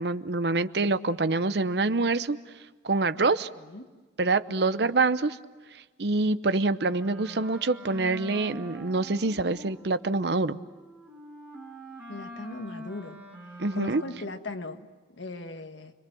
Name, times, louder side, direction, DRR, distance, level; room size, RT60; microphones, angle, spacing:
voice 1, 0.0-2.4 2.8-3.5 4.2-5.4 6.0-10.6 13.6-14.0, right 3 dB, 65° right, 13 dB, 0.8 m, -26 dB
voice 2, 3.6-3.9 12.1-13.2 13.7-14.9 15.1-15.9, left 2 dB, 85° left, 7 dB, 1.6 m, -38 dB
Wind instrument woodwind instrument, 7.0-14.4, equal, 5° right, 5.8 m, -44 dB
30.0 x 22.5 x 7.7 m, 1.3 s
head